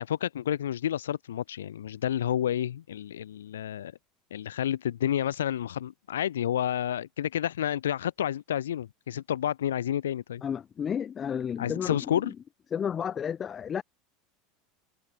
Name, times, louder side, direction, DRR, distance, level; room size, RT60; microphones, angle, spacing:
voice 1, 0.0-3.9 4.3-10.4 11.6-12.3, left 10 dB, 80° left, 6.4 m, -30 dB
voice 2, 10.4-12.3 12.7-13.8, left 8 dB, 30° left, 5.0 m, -32 dB
hypercardioid pair, 80°, 0 cm